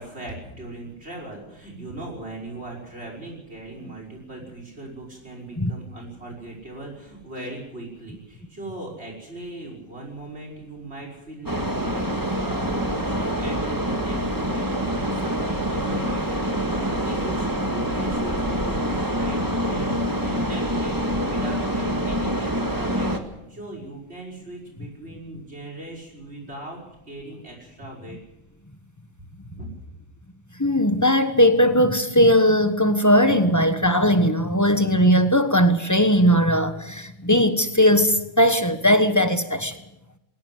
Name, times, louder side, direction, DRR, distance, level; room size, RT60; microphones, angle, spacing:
voice 1, 0.0-23.1 23.5-26.8 27.1-28.2 29.6-29.7, right 2 dB, 55° right, 6.0 m, -39 dB
sound 1, 11.5-23.2, equal, 15° right, 1.8 m, -26 dB
voice 2, 30.6-39.8, equal, 15° left, 1.2 m, -19 dB
20.5 x 18.0 x 7.8 m
omnidirectional pair, 1.4 m